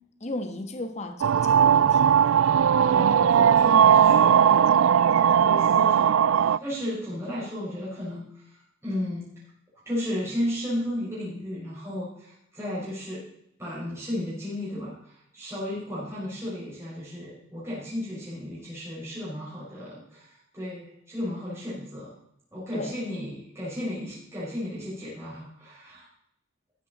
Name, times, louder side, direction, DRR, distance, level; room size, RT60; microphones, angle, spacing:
voice 1, 0.2-2.1 22.7-22.9, left 1 dB, 35° left, 6 dB, 1.3 m, -35 dB
sound 1, 1.2-6.6, right 8 dB, 75° right, 0.3 m, -18 dB
voice 2, 2.8-4.6 5.3-9.3 9.8-13.2 13.6-22.1 22.5-26.1, left 1 dB, 15° right, -9 dB, 5.0 m, -34 dB
14.0 x 10.5 x 4.1 m, 0.74 s
head